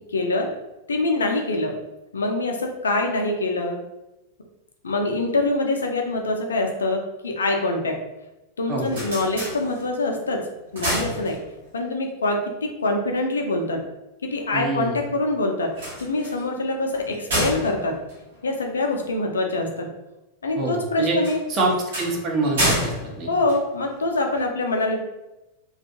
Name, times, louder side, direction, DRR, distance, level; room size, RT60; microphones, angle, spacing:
voice 1, 0.1-0.5 0.9-1.7 2.1-3.8 4.8-8.0 8.6-10.4 10.7-11.4 11.7-13.8 14.3-15.7 16.0-18.0 18.4-19.9 20.4-21.4 23.3-25.0, left 2 dB, 70° left, 2 dB, 0.4 m, -24 dB
sound 1, 8.6-10.1 10.5-11.8 15.6-19.1 21.2-24.2, equal, 65° right, 0.9 m, -29 dB
voice 2, 14.5-15.0 20.6-21.2 21.5-23.3, right 2 dB, 35° right, -1 dB, 0.7 m, -25 dB
2.4 x 2.3 x 2.7 m, 0.99 s
figure-of-eight pair, 90°, 0 cm